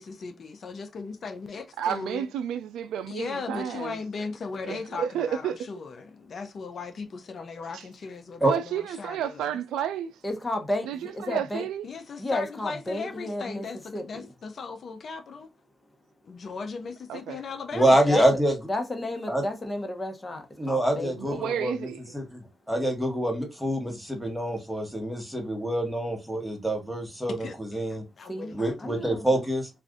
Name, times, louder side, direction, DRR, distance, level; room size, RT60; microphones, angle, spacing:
voice 1, 0.0-2.2 3.1-9.6 11.8-15.5 16.2-18.0 27.4-27.8 28.2-29.1, left 4 dB, 60° left, 0.5 m, -38 dB
voice 2, 1.8-4.0 4.6-5.6 7.7-7.8 8.4-10.2 10.9-11.8 17.1-17.4 21.2-22.0, right 9 dB, 90° right, 0.3 m, -31 dB
voice 3, 10.2-11.7 12.2-13.7 13.9-14.3 18.1-18.2 18.7-21.6 28.3-28.5 28.8-29.4, left 1 dB, 25° left, 1.0 m, -32 dB
voice 4, 17.7-18.5 19.3-19.4 20.6-21.9 22.1-28.0 28.5-29.7, right 1 dB, ahead, 1.2 m, -26 dB
2.5 x 2.4 x 3.5 m
supercardioid pair, 60°, 0 cm